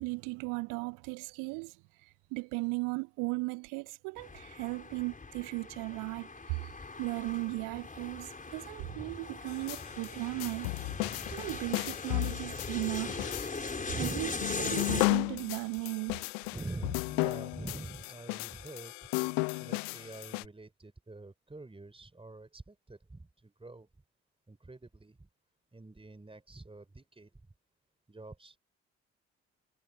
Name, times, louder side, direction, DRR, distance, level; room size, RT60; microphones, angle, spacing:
voice 1, 0.0-1.8 2.3-6.7 7.0-10.9 11.3-13.3 14.0-14.3 14.6-16.2, right 27 dB, 65° right, 1.4 m, -36 dB
sound 1, 4.2-15.1, left 4 dB, 25° left, 4.6 m, -40 dB
voice 2, 8.8-9.2 10.9-11.5 13.9-14.2 16.5-19.1 19.6-23.9 24.5-25.3 25.7-27.3 28.1-28.6, right 2 dB, 15° right, 4.5 m, -45 dB
sound 2, 9.5-20.4, left 37 dB, 65° left, 0.6 m, -34 dB
figure-of-eight pair, 45°, 34 cm